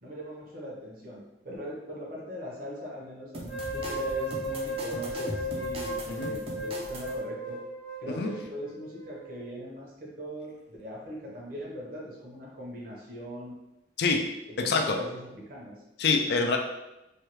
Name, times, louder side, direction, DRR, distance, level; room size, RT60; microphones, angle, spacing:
voice 1, 0.0-7.6 8.0-13.5 14.5-15.8, equal, 50° right, -3 dB, 0.8 m, -40 dB
sound 1, 3.3-7.2, right 1 dB, 30° right, 0.5 m, -39 dB
sound 2, 3.5-9.5, equal, 85° left, 1.0 m, -36 dB
voice 2, 14.6-15.0 16.0-16.6, left 4 dB, 60° left, 4 dB, 0.4 m, -25 dB
3.2 x 2.2 x 3.0 m, 0.94 s
head